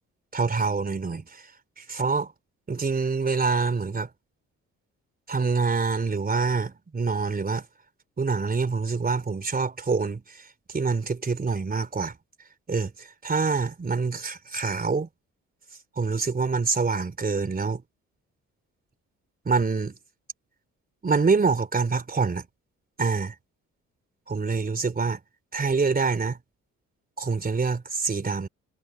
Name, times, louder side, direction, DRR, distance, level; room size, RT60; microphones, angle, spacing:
voice 1, 0.3-1.4 1.8-2.3 2.7-4.1 5.3-7.6 8.2-10.2 10.7-12.1 12.7-12.9 13.2-15.1 16.0-17.8 19.4-19.9 21.0-22.4 23.0-23.3 24.3-25.2 25.5-26.4 27.2-28.5, right 4 dB, 30° right, 3.3 m, -25 dB
cardioid pair, 90°, 30 cm